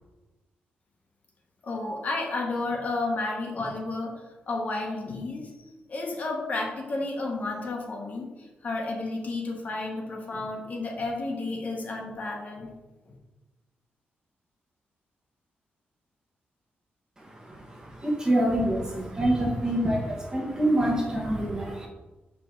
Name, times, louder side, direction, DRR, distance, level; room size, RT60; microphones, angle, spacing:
voice 1, 1.6-4.1 4.5-5.5 5.9-8.3 8.6-12.7, left 2 dB, 45° left, 0 dB, 1.0 m, -31 dB
voice 2, 17.2-21.9, right 1 dB, 20° right, -1 dB, 1.1 m, -26 dB
5.9 x 5.0 x 3.8 m, 1.2 s
wide cardioid pair, 160°, 4 cm